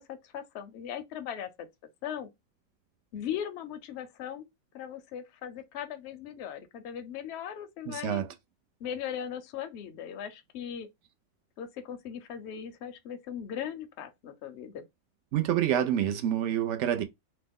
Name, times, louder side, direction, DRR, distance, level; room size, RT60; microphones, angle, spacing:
voice 1, 0.0-1.7 2.0-2.3 3.1-4.5 4.7-8.2 8.8-10.9 11.6-14.8, left 9 dB, 65° left, 0.8 m, -38 dB
voice 2, 7.9-8.3 15.3-17.0, right 10 dB, 70° right, 0.8 m, -27 dB
3.0 x 2.1 x 3.5 m
omnidirectional pair, 1.4 m